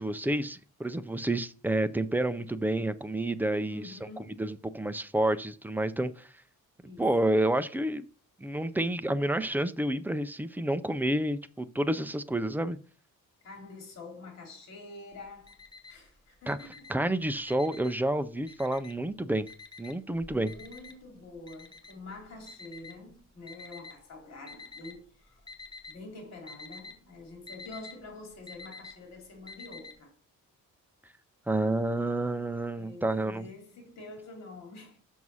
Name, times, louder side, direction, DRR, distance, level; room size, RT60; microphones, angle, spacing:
voice 1, 0.0-4.0 4.4-6.3 7.0-8.1 8.4-12.8 16.5-16.6 16.9-19.5 19.8-20.5 31.5-33.4, right 1 dB, 5° right, 0.3 m, -29 dB
voice 2, 3.6-4.4 6.8-7.0 13.4-16.9 20.3-25.5 25.9-30.1 32.7-35.0, left 2 dB, 55° left, 3.0 m, -47 dB
Alarm, 15.1-16.1 16.4-18.1 18.5-19.1 19.5-23.9 24.5-25.1 25.4-26.0 26.3-29.9, left 4 dB, 15° left, 0.9 m, -48 dB
6.3 x 6.0 x 5.4 m
cardioid pair, 160°, 32 cm